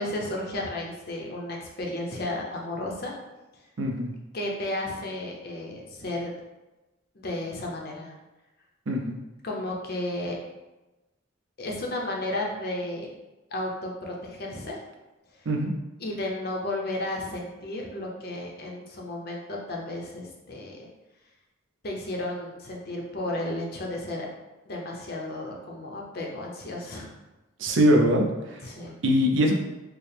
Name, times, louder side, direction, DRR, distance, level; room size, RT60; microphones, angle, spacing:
voice 1, 0.0-3.2 4.3-6.3 7.1-8.1 9.4-10.4 11.6-13.1 13.5-14.8 15.3-15.5 16.0-20.8 21.8-24.3 24.7-27.1 28.6-28.9, left 1 dB, 50° left, -1 dB, 0.6 m, -33 dB
voice 2, 3.8-4.1 8.9-9.2 15.5-15.7 27.6-28.7 29.0-29.5, equal, 65° right, 2 dB, 0.5 m, -22 dB
4.6 x 2.0 x 3.4 m, 1.1 s
head